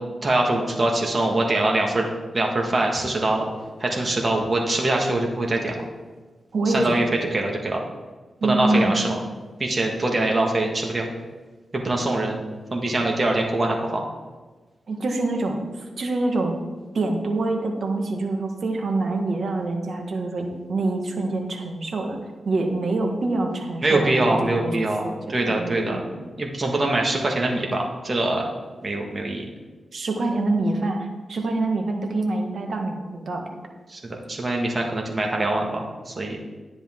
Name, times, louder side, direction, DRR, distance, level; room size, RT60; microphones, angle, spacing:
voice 1, 0.2-2.1 2.3-3.5 3.8-5.8 6.7-7.0 7.3-7.8 8.4-9.2 9.6-11.1 11.7-12.4 12.7-14.0 23.8-25.0 25.3-28.5 28.8-29.4 33.9-36.4, right 2 dB, 40° right, 0 dB, 1.8 m, -23 dB
voice 2, 6.5-7.1 8.4-9.0 14.9-15.7 16.0-16.5 16.9-22.2 22.4-25.1 25.4-26.1 29.9-33.5, right 2 dB, 65° right, 2 dB, 1.7 m, -25 dB
10.5 x 10.0 x 3.8 m, 1.3 s
cardioid pair, 65°, 0 cm